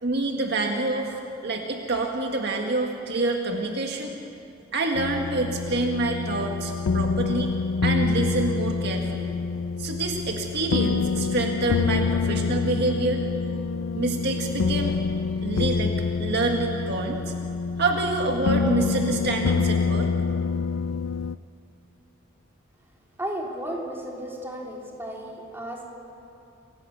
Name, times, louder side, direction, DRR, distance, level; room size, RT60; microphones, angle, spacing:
voice 1, 0.0-4.1 4.7-7.5 7.8-9.4 9.8-13.2 13.9-14.9 15.4-17.3 17.8-20.1, right 2 dB, 55° right, 2 dB, 1.8 m, -27 dB
sound 1, 4.9-21.4, left 4 dB, 85° left, 0.4 m, -26 dB
voice 2, 23.2-25.8, right 1 dB, 10° right, -2 dB, 3.4 m, -34 dB
27.0 x 17.5 x 8.2 m, 2.7 s
head